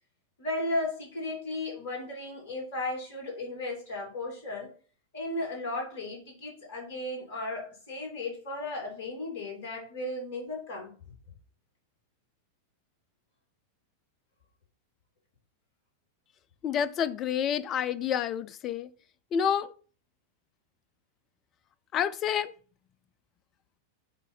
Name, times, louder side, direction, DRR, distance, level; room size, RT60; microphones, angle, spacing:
voice 1, 0.4-4.7 5.1-10.9, left 2 dB, 55° left, 2.8 m, -35 dB
voice 2, 16.6-18.9 19.3-19.7 21.9-22.5, left 8 dB, 30° left, 0.5 m, -28 dB
7.8 x 2.7 x 5.5 m
figure-of-eight pair, 90°, 0 cm